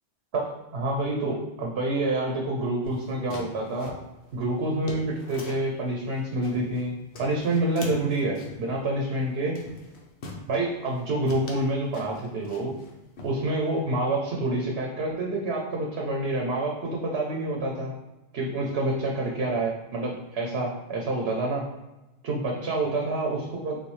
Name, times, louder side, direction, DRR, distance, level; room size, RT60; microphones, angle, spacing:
voice 1, 0.3-3.9 4.3-9.6 10.5-12.8 13.2-17.9 18.3-21.7 22.2-23.8, right 2 dB, 70° right, -1 dB, 1.0 m, -28 dB
sound 1, 2.8-5.7 6.1-6.9 7.1-8.7 9.1-9.3 9.5-10.5 10.9-11.0 11.3-12.9 13.2-13.8, left 3 dB, 75° left, 1.0 m, -42 dB
6.4 x 2.3 x 3.1 m, 1.0 s
omnidirectional pair, 1.1 m